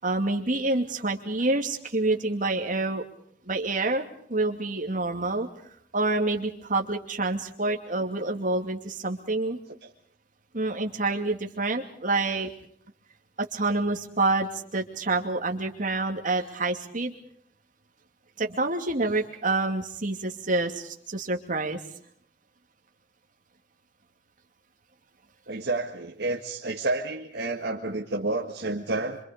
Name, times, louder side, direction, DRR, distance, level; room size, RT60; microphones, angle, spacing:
voice 1, 0.0-3.0 3.4-5.5 5.9-9.6 10.5-12.5 13.4-17.1 18.4-21.8, right 2 dB, 45° right, 3 dB, 2.7 m, -27 dB
voice 2, 25.5-29.2, right 2 dB, 65° right, 1 dB, 1.7 m, -30 dB
26.0 x 25.5 x 5.2 m, 0.64 s
head